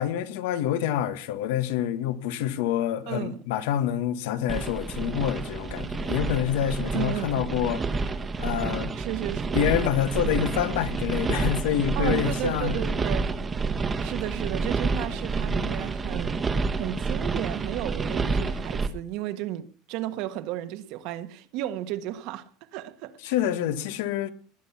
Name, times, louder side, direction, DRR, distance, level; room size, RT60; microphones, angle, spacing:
voice 1, 0.0-7.8 8.4-8.9 9.5-12.8 23.2-24.3, left 10 dB, 85° left, 1.7 m, -27 dB
voice 2, 3.1-3.4 6.9-7.4 8.9-9.7 12.0-13.3 14.0-16.4 16.7-23.2, right 13 dB, 60° right, 1.6 m, -33 dB
sound 1, 4.5-18.9, right 4 dB, 20° right, 1.3 m, -29 dB
20.0 x 10.5 x 5.9 m
supercardioid pair, 145°, 0 cm